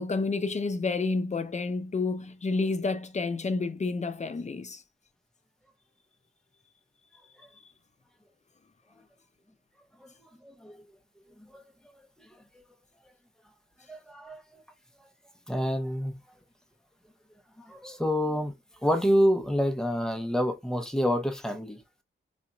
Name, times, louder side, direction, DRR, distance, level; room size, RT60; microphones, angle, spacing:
voice 1, 0.0-4.8, left 3 dB, 35° left, 0.6 m, -29 dB
voice 2, 10.4-10.8 11.4-11.6 12.3-12.6 13.9-14.6 15.5-16.2 17.6-18.5 18.8-21.8, equal, 5° left, 0.8 m, -28 dB
4.0 x 2.9 x 2.3 m
wide cardioid pair, 95°, 20 cm